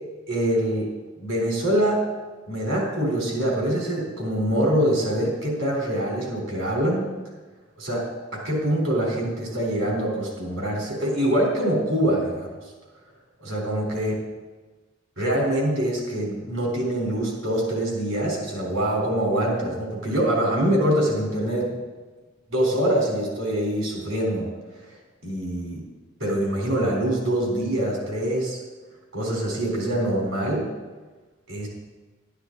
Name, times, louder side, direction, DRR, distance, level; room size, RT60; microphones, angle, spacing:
voice 1, 0.3-0.9 1.2-2.0 2.5-7.1 7.8-12.6 13.4-14.1 15.2-21.7 22.5-24.5 24.8-24.9 25.2-25.8 26.2-28.6 29.1-30.7 31.5-31.7, right 1 dB, 85° right, -2 dB, 4.3 m, -24 dB
12.0 x 11.5 x 4.1 m, 1.3 s
head